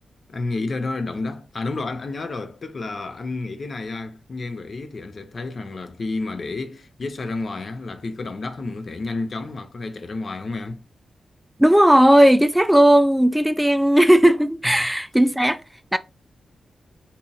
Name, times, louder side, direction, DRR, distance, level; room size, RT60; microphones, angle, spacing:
voice 1, 0.3-10.8, left 3 dB, 55° left, 0.6 m, -30 dB
voice 2, 11.6-15.6 15.9-16.0, right 1 dB, 5° right, 0.4 m, -16 dB
4.0 x 2.7 x 2.4 m
supercardioid pair, 45°, 0 cm